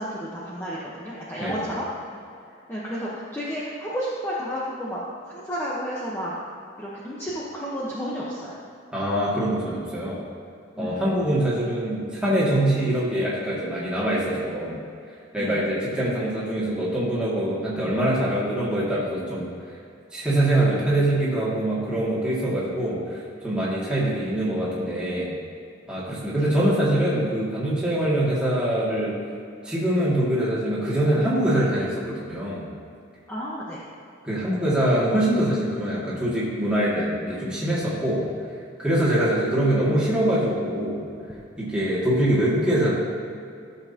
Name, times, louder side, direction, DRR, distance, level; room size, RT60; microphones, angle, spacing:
voice 1, 0.0-1.9 2.7-5.0 5.3-6.4 6.8-8.5 10.8-11.0 15.4-15.6 26.3-26.5 33.3-33.8, equal, 10° left, -8 dB, 1.1 m, -31 dB
voice 2, 8.9-10.2 10.8-14.8 15.3-19.5 20.1-23.0 23.4-25.3 25.9-29.2 29.6-32.7 34.2-38.3 38.8-41.0 41.6-42.9, right 1 dB, 5° right, -9 dB, 2.3 m, -24 dB
15.5 x 7.3 x 2.9 m, 2.5 s
head